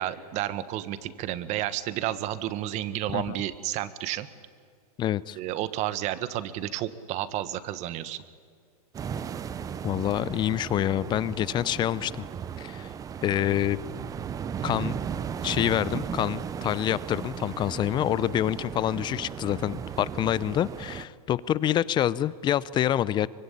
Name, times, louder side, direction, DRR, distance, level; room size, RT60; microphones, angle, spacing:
voice 1, 0.0-4.3 5.4-8.2, right 13 dB, 35° right, 1.5 m, -31 dB
voice 2, 5.0-5.4 9.8-12.2 12.6-12.9 13.2-13.8 14.6-15.0 15.4-23.3, left 11 dB, 25° left, 0.7 m, -27 dB
sound 1, 8.9-21.1, right 8 dB, 15° right, 0.7 m, -36 dB
24.5 x 22.0 x 10.0 m
hypercardioid pair, 135°, 20 cm